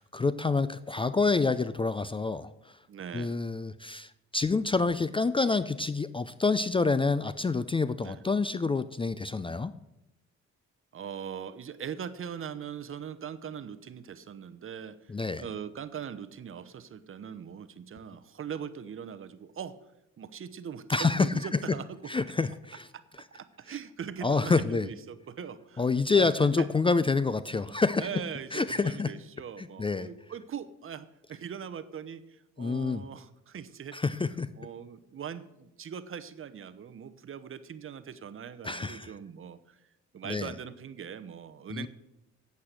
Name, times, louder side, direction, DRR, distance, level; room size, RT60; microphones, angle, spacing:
voice 1, 0.0-2.8 3.1-9.7 15.1-15.4 20.9-21.6 22.1-22.9 24.2-24.9 25.8-28.1 28.5-29.2 29.6-30.1 32.6-33.0 33.9-34.5 38.6-39.1 40.3-40.5 41.7-41.9, left 4 dB, 20° left, 14 dB, 0.4 m, -27 dB
voice 2, 2.9-3.4 8.0-8.2 10.9-15.1 15.4-19.8 20.2-22.1 22.9-25.8 26.1-26.3 26.6-26.7 27.5-27.7 28.0-34.0 34.6-39.8 40.1-41.9, right 8 dB, 45° right, 13 dB, 0.8 m, -41 dB
8.5 x 8.3 x 7.7 m, 0.91 s
cardioid pair, 90°, 30 cm